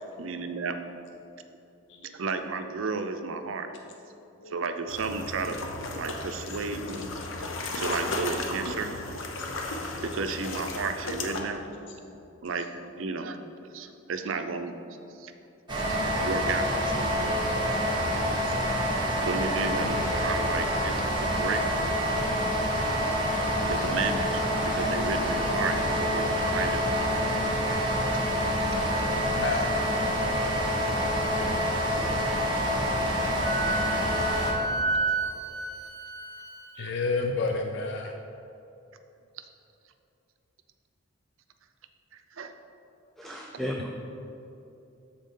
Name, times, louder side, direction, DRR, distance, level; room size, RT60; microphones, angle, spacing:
voice 1, 0.2-0.8 2.0-3.7 4.5-5.6 6.0-7.1 7.8-8.9 10.0-11.6 12.4-12.7 13.0-13.4 13.7-14.8 15.2-15.3 15.9-17.3 18.4-18.5 19.2-21.6 23.6-27.0 28.8-29.0 42.1-42.5 43.2-43.4, right 4 dB, 80° right, 7 dB, 0.5 m, -33 dB
sound 1, 4.9-11.4, left 2 dB, 85° left, 0.8 m, -34 dB
sound 2, 15.7-34.5, equal, 25° right, 1.3 m, -27 dB
Wind instrument woodwind instrument, 33.4-36.9, right 3 dB, 60° right, 1.0 m, -31 dB
voice 2, 36.8-38.1, left 3 dB, 60° left, 3 dB, 0.4 m, -30 dB
voice 3, 43.2-43.9, equal, ahead, -1 dB, 0.4 m, -34 dB
12.5 x 4.3 x 3.8 m, 2.8 s
head